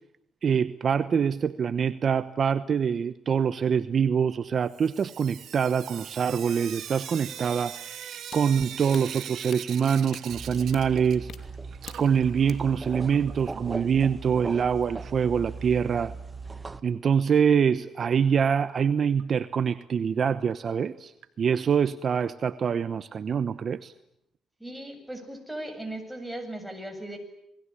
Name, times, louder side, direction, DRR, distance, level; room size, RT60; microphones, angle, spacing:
voice 1, 0.4-11.3 12.0-16.1 16.8-21.1 21.4-23.9, right 7 dB, 50° right, 13 dB, 1.0 m, -25 dB
Sink (filling or washing) / Drip, 4.7-11.5 11.7-13.7 14.8-14.9 15.2-15.3 15.6-15.7 18.6-18.7 19.2-19.3 19.8-19.9 20.5-20.6 21.2-21.3 22.2-22.3, right 10 dB, 70° right, 2.1 m, -42 dB
sound 1, 7.3-12.5, left 8 dB, 65° left, 2.6 m, -48 dB
sound 2, 10.3-16.8, right 4 dB, 25° right, 1.4 m, -39 dB
voice 2, 24.6-27.2, right 1 dB, 5° right, 5 dB, 7.4 m, -37 dB
28.0 x 21.0 x 9.9 m, 0.81 s
cardioid pair, 90°, 0 cm